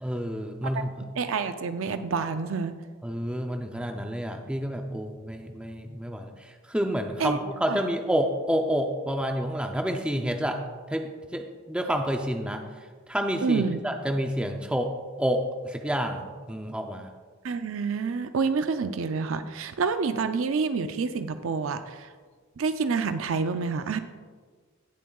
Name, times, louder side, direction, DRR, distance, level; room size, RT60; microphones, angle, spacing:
voice 1, 0.0-1.1 3.0-10.6 10.9-12.6 13.1-14.9 15.2-17.1, equal, 5° right, 4 dB, 0.5 m, -29 dB
voice 2, 1.2-2.7 7.2-7.4 7.7-7.8 13.4-13.8 17.4-22.1 22.6-24.0, right 5 dB, 65° right, 9 dB, 0.5 m, -28 dB
17.5 x 7.3 x 2.3 m, 1.5 s
head